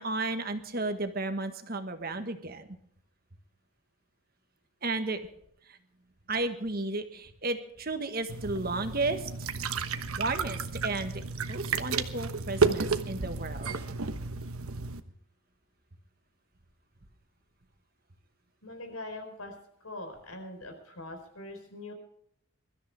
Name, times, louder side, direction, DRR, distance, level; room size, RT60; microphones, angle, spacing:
voice 1, 0.0-2.6 4.8-5.2 6.3-9.2 10.2-11.2 11.5-13.7, right 2 dB, 45° right, 8 dB, 1.6 m, -33 dB
sound 1, 8.3-15.0, right 4 dB, 85° right, 1.1 m, -32 dB
voice 2, 18.6-19.5 19.8-21.9, left 2 dB, 85° left, 5 dB, 4.4 m, -42 dB
23.0 x 13.5 x 3.6 m, 0.70 s
head